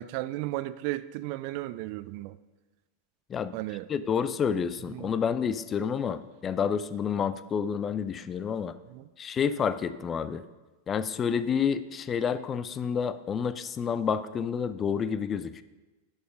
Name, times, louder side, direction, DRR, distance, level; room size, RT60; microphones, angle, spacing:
voice 1, 0.0-2.3 3.5-3.9 4.9-5.1 8.9-9.1, right 17 dB, 45° right, 15 dB, 0.3 m, -34 dB
voice 2, 3.9-8.7 9.2-10.4 10.9-15.6, left 7 dB, 25° left, 14 dB, 0.4 m, -29 dB
11.0 x 4.8 x 5.2 m, 1.2 s
figure-of-eight pair, 90°, 0 cm